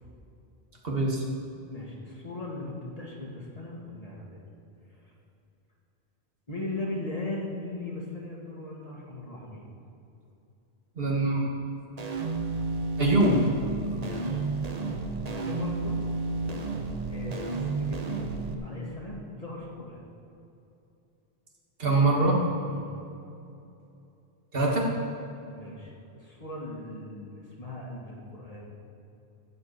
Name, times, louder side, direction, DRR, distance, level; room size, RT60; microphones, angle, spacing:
voice 1, 0.8-1.2 11.0-11.6 13.0-13.4 21.8-22.4 24.5-24.9, right 2 dB, 65° right, -1 dB, 1.8 m, -23 dB
voice 2, 1.7-4.4 4.9-5.1 6.5-9.7 14.0-14.4 15.3-16.0 17.1-20.0 22.7-23.0 25.5-28.7, left 2 dB, 35° left, -2 dB, 1.9 m, -38 dB
sound 1, 12.0-18.5, right 3 dB, 45° right, 0.8 m, -31 dB
14.0 x 5.0 x 7.9 m, 2.7 s
omnidirectional pair, 1.0 m